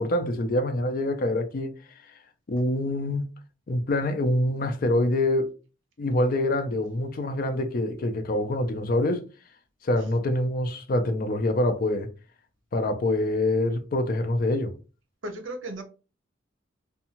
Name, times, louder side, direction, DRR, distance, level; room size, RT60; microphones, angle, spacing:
voice 1, 0.0-1.7 2.5-3.3 3.7-5.5 6.0-9.2 9.8-12.1 12.7-14.7, left 1 dB, 45° left, 0.4 m, -25 dB
voice 2, 15.2-15.8, right 1 dB, 80° right, 0.7 m, -36 dB
2.6 x 2.3 x 2.8 m
head